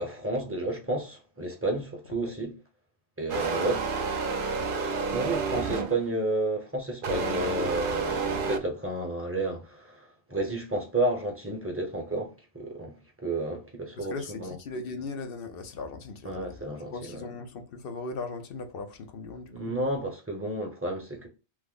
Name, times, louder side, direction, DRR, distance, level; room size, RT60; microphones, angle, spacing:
voice 1, 0.0-2.6 3.2-3.8 5.1-14.6 16.2-17.3 19.5-21.3, right 2 dB, 15° right, 0.7 m, -31 dB
sound 1, 3.3-6.1 7.0-8.6, right 4 dB, 55° right, 0.7 m, -30 dB
voice 2, 3.4-3.8 4.0-4.1 4.5-4.6 14.0-19.7, left 3 dB, 60° left, 0.8 m, -39 dB
3.1 x 2.1 x 3.5 m
omnidirectional pair, 1.2 m